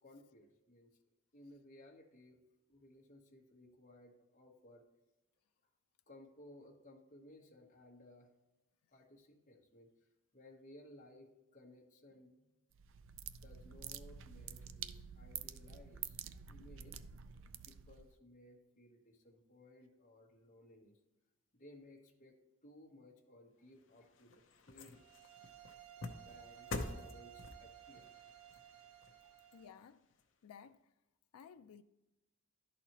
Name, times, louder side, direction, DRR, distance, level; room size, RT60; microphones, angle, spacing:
voice 1, 0.0-1.0 1.3-2.4 2.7-4.8 6.1-8.3 8.9-9.9 10.3-12.5 13.4-16.2 16.5-17.0 17.7-20.9 21.5-22.3 22.6-24.4 24.7-25.0 26.2-28.1 29.2-29.3, left 1 dB, 35° left, 1.2 m, -60 dB
sound 1, 12.7-18.1, right 8 dB, 60° right, 0.3 m, -48 dB
sound 2, 23.7-30.2 30.7-30.8, left 2 dB, 60° left, 0.7 m, -48 dB
sound 3, 24.9-29.7, right 12 dB, 90° right, 0.7 m, -57 dB
voice 2, 29.5-30.1 30.4-30.9 31.3-31.8, left 7 dB, 90° left, 0.3 m, -56 dB
11.5 x 4.2 x 2.9 m
head